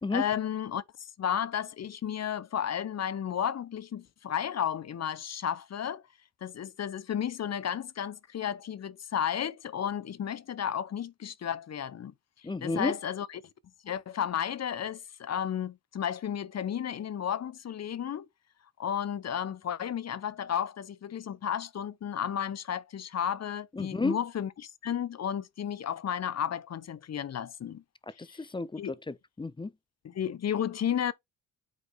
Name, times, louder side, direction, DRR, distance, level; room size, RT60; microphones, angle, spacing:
voice 1, 0.1-6.0 6.4-12.1 12.6-13.4 13.8-18.3 18.8-27.8 28.3-28.4 28.8-28.9 30.0-31.1, left 9 dB, 40° left, 0.8 m, -33 dB
voice 2, 12.4-12.9 23.7-24.2 28.2-29.7, left 3 dB, 15° left, 0.4 m, -32 dB
8.2 x 4.2 x 3.4 m
cardioid pair, 90°, 41 cm